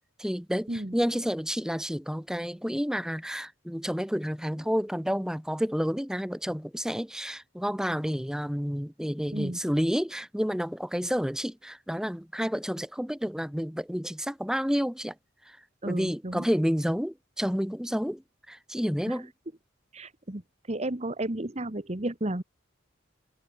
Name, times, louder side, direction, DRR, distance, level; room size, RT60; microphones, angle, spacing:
voice 1, 0.2-15.1 15.5-15.6 15.8-18.2 18.5-19.3, equal, 5° right, 1.5 m, -30 dB
voice 2, 15.8-16.5 19.1-19.2 19.9-20.4 20.7-22.4, right 1 dB, 30° right, 1.4 m, -32 dB
head